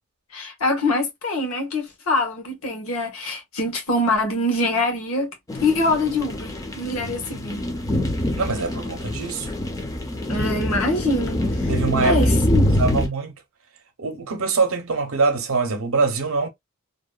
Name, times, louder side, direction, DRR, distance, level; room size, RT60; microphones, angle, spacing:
voice 1, 0.3-5.3 5.6-7.6 10.3-11.7 12.0-12.8, left 2 dB, 75° left, 1.1 m, -24 dB
sound 1, 5.5-13.1, left 1 dB, 15° left, 0.4 m, -24 dB
voice 2, 8.4-9.5 11.7-12.3 12.7-13.3 14.0-16.5, right 4 dB, 65° right, 0.6 m, -23 dB
2.7 x 2.1 x 2.3 m
head